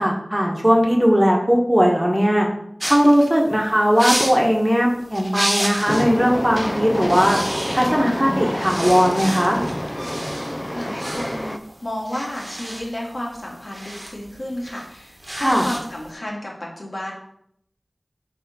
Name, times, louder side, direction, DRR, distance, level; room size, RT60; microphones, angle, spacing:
voice 1, 0.0-2.5 2.9-7.4 7.7-9.6 15.3-15.7, equal, 15° right, -1 dB, 1.6 m, -18 dB
sound 1, 2.8-6.1 6.5-6.7 7.0-8.1 8.5-16.1, right 1 dB, 30° right, 1.3 m, -31 dB
Train, 5.9-11.6, equal, 10° left, 0.5 m, -27 dB
voice 2, 10.7-17.1, left 1 dB, 65° left, -3 dB, 2.2 m, -32 dB
9.0 x 3.6 x 4.4 m, 0.71 s
wide cardioid pair, 50°, 0 cm